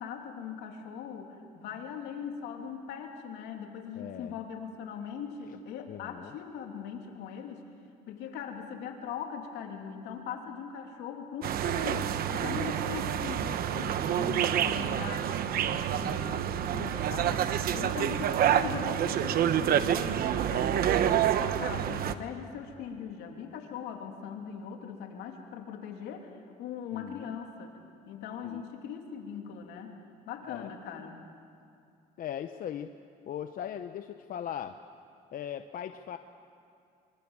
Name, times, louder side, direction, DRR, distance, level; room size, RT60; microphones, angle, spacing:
voice 1, 0.0-7.6 8.1-27.7 28.1-30.0 30.3-31.2, left 7 dB, 85° left, 2 dB, 3.1 m, -40 dB
voice 2, 3.9-4.3 5.5-5.6 5.9-6.3 26.9-27.3 28.4-28.7 30.5-30.7 32.2-32.9 33.3-34.8 35.3-36.2, left 9 dB, 55° left, 8 dB, 0.9 m, -39 dB
sound 1, 11.4-22.1, right 10 dB, 65° right, 1.1 m, -28 dB
24.5 x 24.0 x 7.3 m, 2.5 s
cardioid pair, 110°, 17 cm